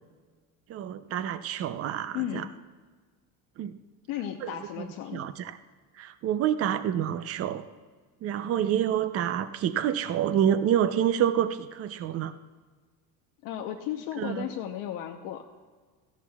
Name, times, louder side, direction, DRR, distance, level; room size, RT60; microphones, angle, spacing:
voice 1, 0.7-2.5 3.6-3.8 4.4-5.6 6.0-7.6 8.2-12.3 14.2-14.5, right 10 dB, 40° right, 12 dB, 0.6 m, -28 dB
voice 2, 2.1-2.5 4.1-5.2 13.4-15.4, left 11 dB, 70° left, 3 dB, 0.9 m, -34 dB
17.0 x 13.5 x 2.4 m, 1.5 s
cardioid pair, 135°, 36 cm